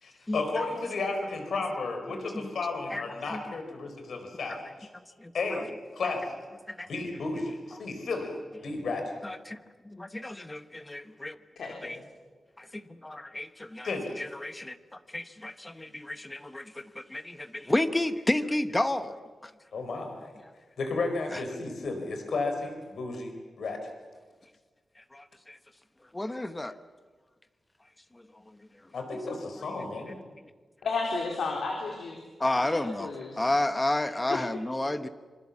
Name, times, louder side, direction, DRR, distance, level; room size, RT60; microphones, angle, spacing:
voice 1, 0.0-4.9 5.3-6.4 6.9-8.3 8.6-9.2 13.8-14.2 19.7-20.3 20.8-23.8 28.9-30.2, left 3 dB, 70° left, 5 dB, 4.6 m, -33 dB
voice 2, 9.2-9.6 9.8-11.4 11.8-12.0 12.6-19.5 21.3-21.4 25.1-25.6 26.1-26.7 32.4-33.1 33.4-35.1, left 1 dB, 15° left, 11 dB, 1.0 m, -31 dB
voice 3, 11.6-12.0 30.8-32.2 32.5-33.4 34.3-34.4, left 4 dB, 90° left, 1 dB, 3.7 m, -33 dB
26.0 x 24.5 x 7.4 m, 1.4 s
wide cardioid pair, 140°, 0 cm